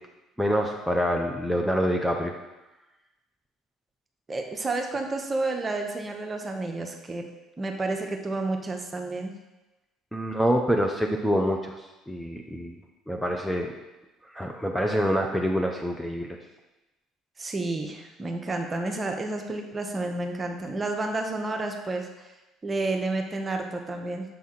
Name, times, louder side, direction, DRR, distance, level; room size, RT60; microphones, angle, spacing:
voice 1, 0.4-2.3 10.1-12.8 13.1-13.7 14.3-16.4, equal, ahead, 1 dB, 0.6 m, -26 dB
voice 2, 4.3-7.3 7.6-9.3 17.4-22.3 22.6-24.2, right 2 dB, 25° right, 3 dB, 0.8 m, -30 dB
6.8 x 3.5 x 4.4 m, 1.0 s
figure-of-eight pair, 55°, 0 cm